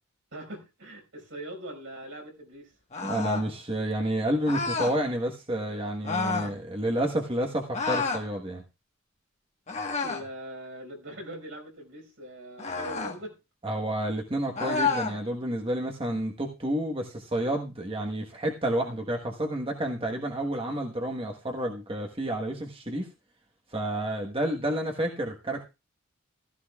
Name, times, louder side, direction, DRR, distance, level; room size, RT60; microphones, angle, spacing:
voice 1, 0.3-2.7 10.0-13.3, right 1 dB, 70° right, 5.4 m, -41 dB
sound 1, 2.9-3.5 4.5-5.0 6.0-6.5 7.7-8.3 9.7-10.3 12.6-13.2 14.6-15.2, left 4 dB, 35° left, 1.5 m, -29 dB
voice 2, 3.0-8.6 13.6-23.1 23.7-25.7, right 1 dB, 25° right, 1.3 m, -30 dB
15.5 x 14.0 x 2.4 m
head